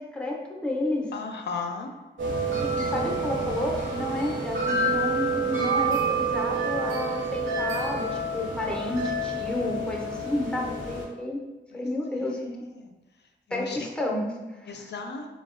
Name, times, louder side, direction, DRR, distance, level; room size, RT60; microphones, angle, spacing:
voice 1, 0.0-1.1 2.6-11.4 11.7-12.6 13.5-14.9, left 1 dB, 5° left, -1 dB, 0.5 m, -31 dB
voice 2, 1.1-1.9 11.7-11.8 12.2-12.9 13.5-13.9 14.7-15.3, left 4 dB, 65° left, 4 dB, 0.4 m, -36 dB
sound 1, 2.2-11.0, right 3 dB, 85° right, 0.9 m, -28 dB
3.9 x 2.1 x 2.4 m, 1.1 s
wide cardioid pair, 100°, 19 cm